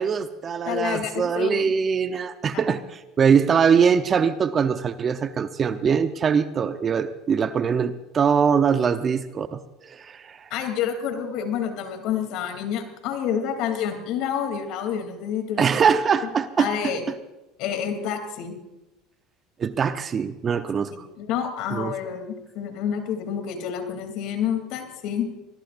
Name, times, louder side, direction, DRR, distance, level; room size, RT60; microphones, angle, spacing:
voice 1, 0.0-10.5 15.6-16.7 19.6-21.1 21.7-21.9, right 6 dB, 35° right, 10 dB, 0.9 m, -22 dB
voice 2, 0.6-1.7 10.5-15.7 16.6-17.0 17.6-18.5 20.9-25.3, left 8 dB, 65° left, 5 dB, 3.2 m, -28 dB
24.0 x 20.5 x 2.6 m, 1.0 s
supercardioid pair, 90°, 0 cm